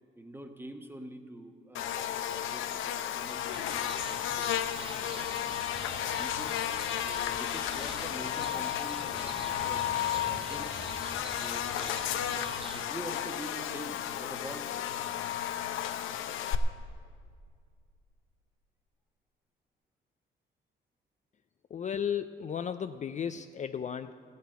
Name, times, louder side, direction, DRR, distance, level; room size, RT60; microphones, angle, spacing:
voice 1, 0.2-4.5 5.1-6.6 7.1-11.0 11.3-12.2 12.7-14.9, right 1 dB, 10° right, 6 dB, 1.2 m, -46 dB
Buzz, 1.7-16.5, left 11 dB, 90° left, 0.7 m, -33 dB
sound 1, 3.5-12.8, right 6 dB, 30° right, 0.4 m, -46 dB
voice 2, 21.7-24.1, left 8 dB, 40° left, 10 dB, 0.4 m, -34 dB
14.5 x 8.3 x 7.9 m, 2.2 s
cardioid pair, 90°, 20 cm